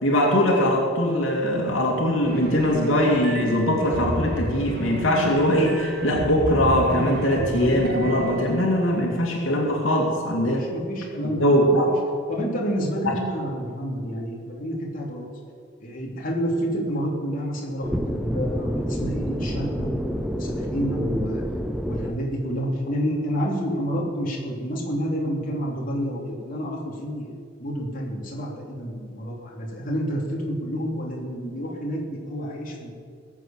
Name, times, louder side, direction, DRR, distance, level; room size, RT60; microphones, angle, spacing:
voice 1, 0.0-10.7 11.4-11.9 13.0-13.1, equal, 90° left, -1 dB, 2.7 m, -21 dB
sound 1, 2.2-8.9, right 1 dB, 50° right, 1.6 m, -31 dB
voice 2, 10.5-11.7 12.3-15.2 15.8-21.4 21.8-32.9, equal, 45° left, -3 dB, 3.3 m, -29 dB
sound 2, 17.8-22.1, equal, 5° right, 0.7 m, -28 dB
19.5 x 8.2 x 7.3 m, 2.1 s
head